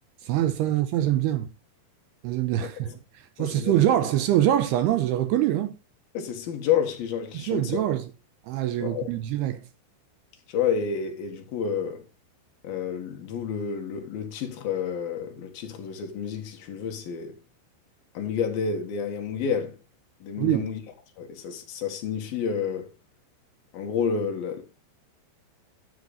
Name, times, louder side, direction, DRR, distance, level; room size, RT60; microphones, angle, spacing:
voice 1, 0.2-1.5 2.2-5.8 7.3-8.1 8.4-9.7 20.4-20.7, right 12 dB, 80° right, 2.3 m, -24 dB
voice 2, 3.4-3.7 6.1-7.8 8.8-9.1 10.5-12.1 12.6-17.4 18.1-19.8 20.2-20.8 21.2-22.9 23.7-24.6, left 7 dB, 60° left, 3.0 m, -29 dB
13.5 x 6.8 x 4.1 m
omnidirectional pair, 5.5 m